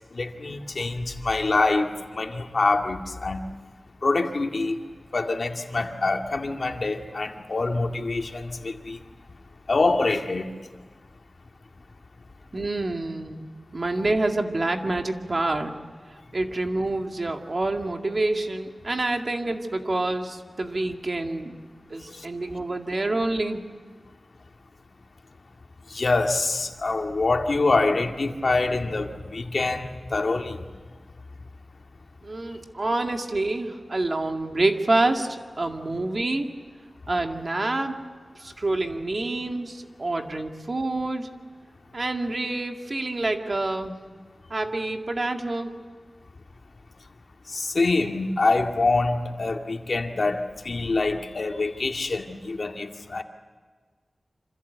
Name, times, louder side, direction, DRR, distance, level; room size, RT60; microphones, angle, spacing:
voice 1, 0.1-3.4 4.0-4.8 5.1-9.0 9.7-10.5 22.1-22.2 25.9-30.6 47.5-53.2, left 3 dB, 65° left, 4 dB, 2.1 m, -25 dB
voice 2, 12.5-13.5 13.7-15.7 16.3-21.6 21.9-23.6 32.2-36.5 37.1-38.0 38.4-41.3 41.9-44.0 44.5-45.7, right 2 dB, 50° right, 4 dB, 2.2 m, -27 dB
27.0 x 27.0 x 8.2 m, 1.5 s
wide cardioid pair, 80°, 0 cm